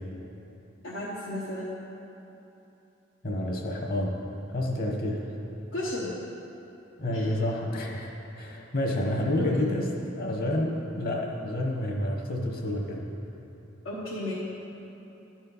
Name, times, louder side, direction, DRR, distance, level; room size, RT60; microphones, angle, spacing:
voice 1, 0.8-1.7 5.7-6.1 7.1-7.3 9.4-9.7 13.8-14.3, left 1 dB, 90° left, -7 dB, 1.2 m, -33 dB
voice 2, 3.2-4.2 4.5-5.3 7.0-13.1, left 1 dB, 50° left, 0 dB, 1.1 m, -29 dB
12.5 x 4.4 x 5.5 m, 2.9 s
head